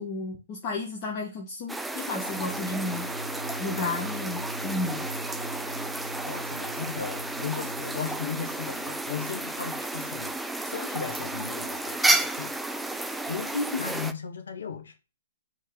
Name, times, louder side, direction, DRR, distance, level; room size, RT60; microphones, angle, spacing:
voice 1, 0.0-3.1 3.6-5.1 13.5-13.8, left 3 dB, 30° left, 1.1 m, -32 dB
sound 1, 1.7-14.1, right 2 dB, 5° right, 0.3 m, -32 dB
sound 2, 2.3-8.2, right 1 dB, 90° right, 0.7 m, -40 dB
voice 2, 6.3-10.3 10.6-12.6 13.3-15.0, left 7 dB, 60° left, 1.0 m, -36 dB
4.4 x 3.1 x 3.7 m
figure-of-eight pair, 120°, 0 cm